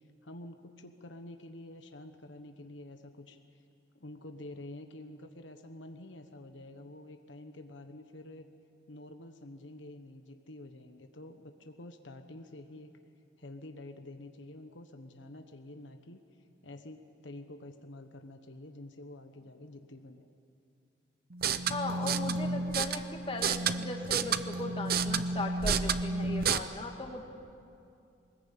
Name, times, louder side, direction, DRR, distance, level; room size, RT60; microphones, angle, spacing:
voice 1, 0.0-3.4 3.9-8.5 8.9-12.9 13.4-16.2 16.6-20.3, left 1 dB, 75° left, 6 dB, 1.2 m, -48 dB
sound 1, 21.3-26.6, right 5 dB, 50° right, 0.7 m, -31 dB
voice 2, 21.7-27.2, left 2 dB, 30° left, 3 dB, 2.0 m, -38 dB
23.5 x 20.5 x 8.8 m, 2.5 s
head